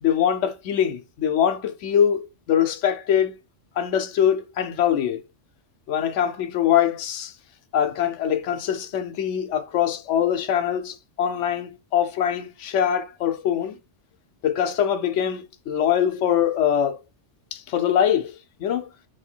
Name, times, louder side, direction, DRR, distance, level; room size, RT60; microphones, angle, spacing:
voice 1, 0.0-3.4 3.8-5.2 5.9-7.3 7.7-13.8 14.4-17.0 17.5-18.3 18.6-18.9, left 9 dB, 75° left, 0.9 m, -23 dB
3.3 x 2.8 x 4.2 m
omnidirectional pair, 1.3 m